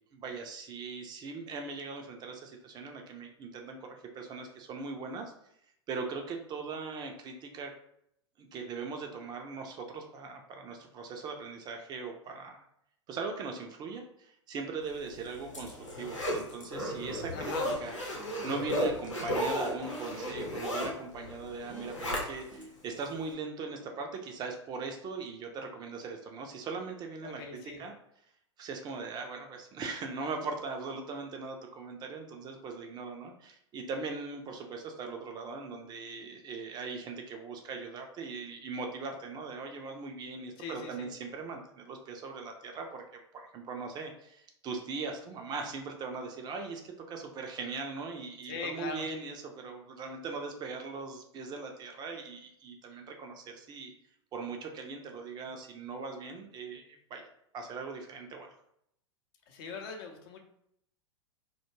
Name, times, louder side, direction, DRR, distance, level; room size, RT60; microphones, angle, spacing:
voice 1, 0.1-5.3 5.9-7.7 8.4-12.6 13.1-17.5 17.8-27.9 28.6-43.0 43.3-53.9 54.3-57.2 57.5-58.5, right 4 dB, 25° right, 3 dB, 0.4 m, -40 dB
Zipper (clothing), 15.0-22.6 23.1-23.2, equal, 85° left, 0.8 m, -34 dB
voice 2, 17.3-17.7 27.2-27.8 40.6-41.1 48.4-49.0 59.5-60.4, left 4 dB, 50° left, 3 dB, 0.6 m, -40 dB
2.2 x 2.1 x 3.0 m, 0.73 s
figure-of-eight pair, 95°, 16 cm